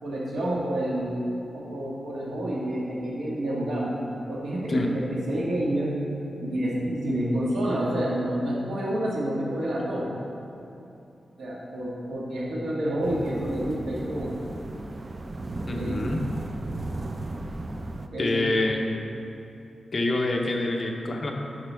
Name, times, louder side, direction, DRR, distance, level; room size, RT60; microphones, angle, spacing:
voice 1, 0.0-1.2 1.5-3.9 4.3-6.0 6.4-10.1 11.4-14.4 15.6-16.2 18.1-18.5, right 1 dB, 90° right, -5 dB, 1.6 m, -29 dB
sound 1, 13.0-18.1, right 2 dB, 30° right, 0.3 m, -35 dB
voice 2, 15.7-16.2 18.2-18.8 19.9-21.3, left 2 dB, 35° left, 2 dB, 0.7 m, -26 dB
9.4 x 6.0 x 3.4 m, 2.8 s
wide cardioid pair, 155°, 0 cm